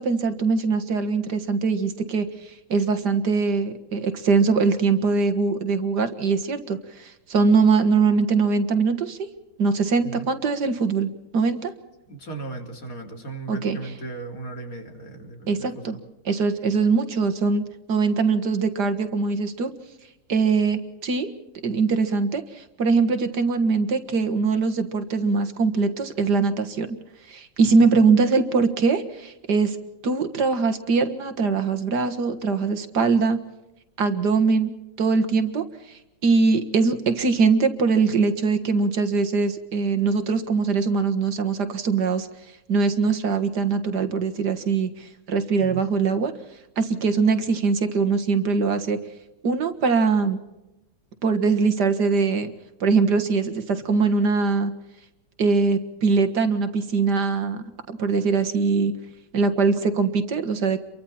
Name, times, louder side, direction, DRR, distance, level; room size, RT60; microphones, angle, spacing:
voice 1, 0.0-9.3 9.6-11.7 13.5-13.8 15.5-16.0 16.3-17.6 17.9-19.7 20.3-21.3 21.6-27.0 27.3-29.8 30.0-33.4 34.0-34.7 35.0-42.3 42.7-46.3 46.8-49.0 49.4-50.4 51.2-52.5 52.8-54.7 55.4-58.9 59.3-60.8, right 4 dB, 75° right, 9 dB, 2.2 m, -22 dB
voice 2, 12.1-16.0 27.8-28.1 45.5-45.8, right 3 dB, 55° left, 3 dB, 3.5 m, -37 dB
30.0 x 24.0 x 4.3 m, 0.96 s
omnidirectional pair, 1.8 m